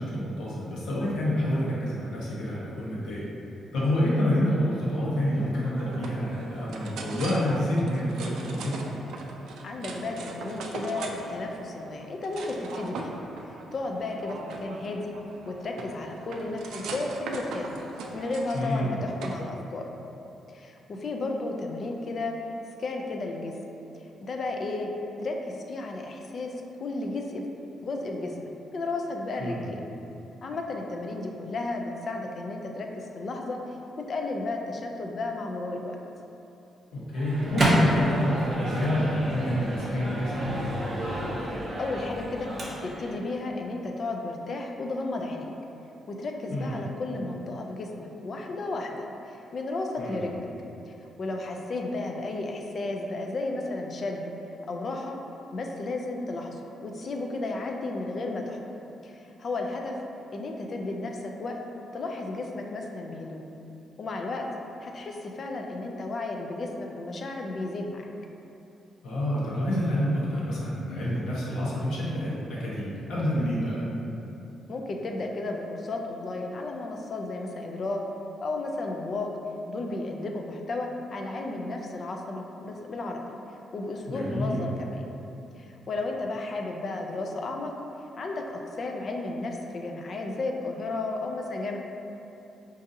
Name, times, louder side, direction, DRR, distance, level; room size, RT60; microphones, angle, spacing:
voice 1, 0.0-3.3 3.7-8.8 18.5-19.1 29.4-29.7 36.9-40.3 46.5-46.8 50.0-50.3 69.0-73.8 84.1-84.6, equal, 85° left, -7 dB, 0.9 m, -28 dB
sound 1, 5.1-19.4, right 3 dB, 80° right, 0.3 m, -40 dB
voice 2, 9.6-13.1 13.7-15.2 15.5-17.8 18.1-19.9 20.5-22.4 22.8-23.5 24.2-24.9 25.2-27.5 27.8-29.8 30.4-33.8 34.1-36.0 41.8-42.6 42.8-45.5 46.1-50.5 50.8-54.3 54.7-55.2 55.5-58.6 59.0-60.0 60.3-61.6 61.9-63.4 64.0-64.5 64.8-68.1 74.7-78.0 78.4-79.3 79.7-83.4 83.7-85.0 85.6-87.7 88.2-91.8, left 2 dB, 35° left, 2 dB, 0.3 m, -33 dB
Microwave oven, 37.1-43.1, equal, 30° right, 0.6 m, -28 dB
4.9 x 2.5 x 2.7 m, 2.9 s
cardioid pair, 180°, 0 cm